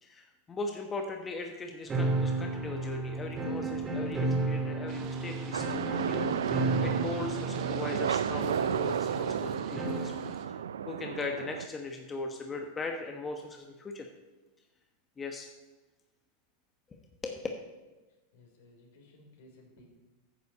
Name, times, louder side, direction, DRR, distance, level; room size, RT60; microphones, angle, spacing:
voice 1, 0.0-10.1 10.5-10.6 10.9-14.1 15.2-15.5 17.2-17.5, left 3 dB, 20° left, 3 dB, 1.2 m, -39 dB
sound 1, 1.9-10.3, right 2 dB, 25° right, 2.1 m, -33 dB
sound 2, 4.9-10.5, right 8 dB, 50° right, 1.1 m, -46 dB
sound 3, 5.5-11.7, right 8 dB, 85° right, 0.4 m, -33 dB
voice 2, 18.3-19.9, left 1 dB, 70° left, 1 dB, 3.3 m, -57 dB
9.6 x 6.8 x 6.7 m, 1.2 s
hypercardioid pair, 105°, 0 cm